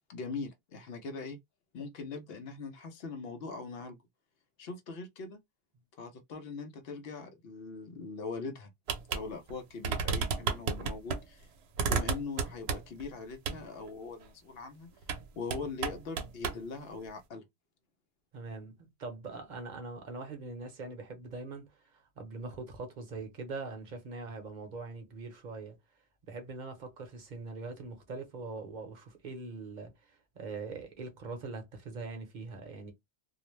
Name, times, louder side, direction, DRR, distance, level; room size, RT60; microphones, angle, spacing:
voice 1, 0.1-1.4 1.7-4.0 4.6-5.4 6.0-8.7 9.1-11.5 11.8-14.9 15.4-17.4, left 4 dB, 70° left, 0.8 m, -41 dB
sound 1, 8.9-9.2 9.5-9.6 9.8-11.2 11.8-13.0 13.5-13.6 15.0-15.2 15.5-16.6, right 5 dB, 85° right, 0.8 m, -32 dB
voice 2, 18.3-25.8 26.3-29.9 30.3-32.9, right 3 dB, 50° right, 0.8 m, -42 dB
2.4 x 2.0 x 3.0 m
omnidirectional pair, 1.0 m